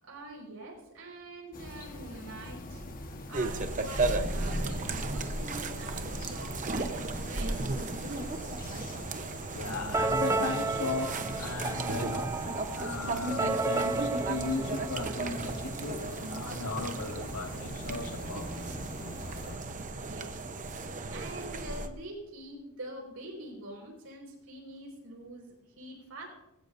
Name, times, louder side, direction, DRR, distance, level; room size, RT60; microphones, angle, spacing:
voice 1, 0.0-2.8 3.3-7.8 19.9-20.7 21.1-26.3, right 1 dB, 70° right, 5.1 m, -45 dB
sound 1, 1.5-19.6, left 1 dB, 40° left, 1.4 m, -43 dB
sound 2, 3.3-21.9, right 3 dB, 35° right, 0.9 m, -35 dB
voice 2, 9.5-12.3 12.7-18.8, left 3 dB, 85° left, 2.0 m, -36 dB
sound 3, 9.9-15.7, right 3 dB, 15° right, 0.5 m, -33 dB
20.5 x 16.0 x 2.7 m
head